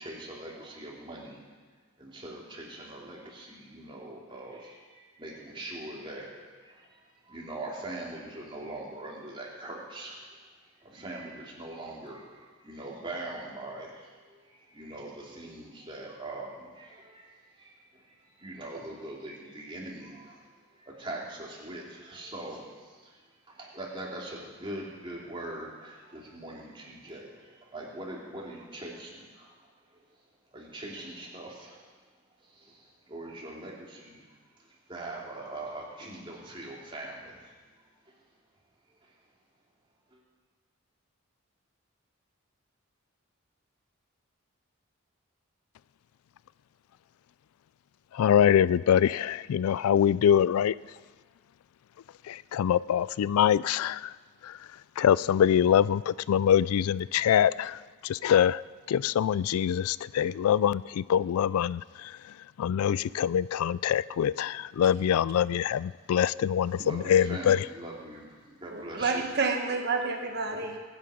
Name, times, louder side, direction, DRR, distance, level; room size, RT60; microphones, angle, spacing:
voice 1, 0.0-1.4 2.0-10.4 10.8-23.2 23.5-29.5 30.1-30.2 30.5-31.8 32.4-34.2 34.6-38.2 38.9-39.1 40.1-40.2 66.8-69.2 70.5-70.7, right 1 dB, 25° right, -3 dB, 2.8 m, -42 dB
voice 2, 48.1-50.7 52.3-54.1 54.4-54.6 55.0-58.6 58.9-67.7, left 9 dB, 90° left, 20 dB, 0.3 m, -24 dB
voice 3, 68.7-70.8, right 4 dB, 50° right, 3 dB, 1.2 m, -29 dB
22.5 x 9.5 x 5.0 m, 1.5 s
head